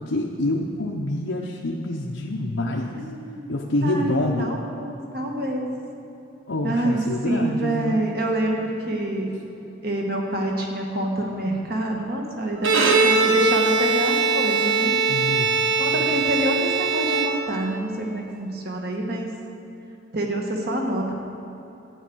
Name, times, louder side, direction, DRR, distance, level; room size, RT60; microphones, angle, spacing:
voice 1, 0.0-2.9 3.5-4.5 6.5-8.0 15.1-15.5, left 1 dB, 85° left, -2 dB, 0.9 m, -26 dB
voice 2, 3.0-3.5 3.8-5.7 6.6-9.3 9.8-14.9 15.8-19.3 20.1-21.1, right 1 dB, 50° right, 0 dB, 1.7 m, -27 dB
Bowed string instrument, 12.6-17.8, right 4 dB, 80° right, 1.2 m, -21 dB
12.5 x 9.3 x 6.3 m, 3.0 s
head